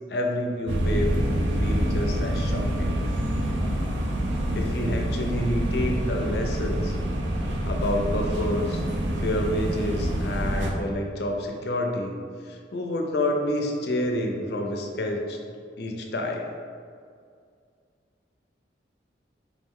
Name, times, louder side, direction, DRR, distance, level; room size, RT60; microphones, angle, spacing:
voice 1, 0.1-1.1 1.6-2.9 4.5-6.9 7.6-8.8 9.2-12.2 12.5-15.4 15.8-16.5, left 1 dB, 65° left, 2 dB, 0.5 m, -28 dB
sound 1, 0.7-10.7, right 1 dB, 85° right, 0.5 m, -26 dB
3.7 x 3.1 x 3.6 m, 2.2 s
head